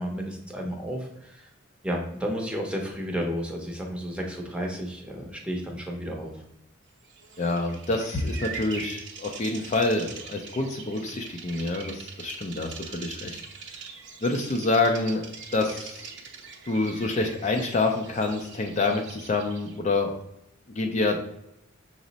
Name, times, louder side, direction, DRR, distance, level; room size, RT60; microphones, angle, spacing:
voice 1, 0.0-1.5 1.8-6.4, equal, 5° right, 0 dB, 0.7 m, -32 dB
Bird vocalization bird call bird song, 7.1-19.8, right 5 dB, 60° right, 0.6 m, -42 dB
voice 2, 7.4-13.4 14.2-15.2 15.5-16.0 16.6-20.1 20.7-21.2, left 2 dB, 35° left, 2 dB, 0.4 m, -27 dB
6.0 x 2.0 x 3.9 m, 0.81 s
head